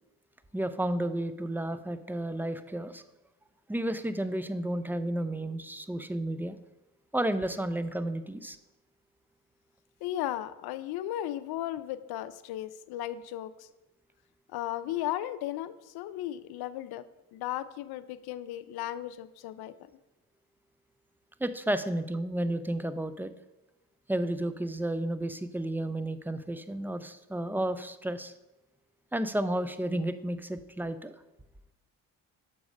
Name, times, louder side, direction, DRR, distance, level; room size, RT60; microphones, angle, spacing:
voice 1, 0.5-3.0 3.7-6.6 7.1-8.6 21.4-23.3 24.1-28.3 29.1-31.2, right 1 dB, 5° right, 12 dB, 0.5 m, -32 dB
voice 2, 10.0-13.7 14.5-17.0 17.3-19.7, left 13 dB, 70° left, 15 dB, 0.6 m, -35 dB
6.9 x 4.9 x 5.3 m, 0.97 s
supercardioid pair, 70°, 39 cm